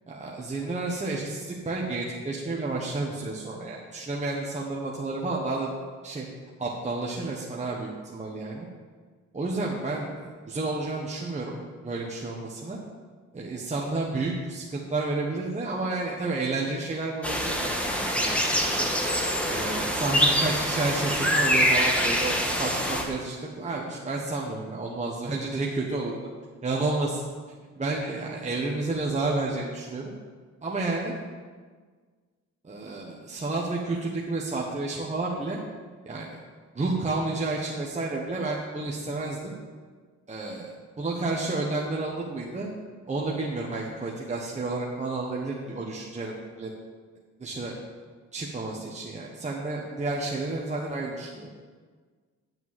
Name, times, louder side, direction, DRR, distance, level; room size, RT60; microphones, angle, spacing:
voice 1, 0.1-5.7 6.0-6.2 6.6-8.7 9.3-11.6 11.8-12.8 13.3-17.7 18.2-18.9 19.5-26.1 26.6-27.2 27.7-30.1 30.6-31.1 32.6-35.6 36.1-36.4 36.7-39.5 40.3-40.7 41.0-42.7 43.1-46.8 47.4-47.8 48.3-51.5, right 3 dB, 25° right, -3 dB, 1.4 m, -31 dB
sound 1, 17.2-23.0, equal, 5° left, 1.7 m, -25 dB
9.4 x 5.9 x 7.5 m, 1.5 s
cardioid pair, 90°, 30 cm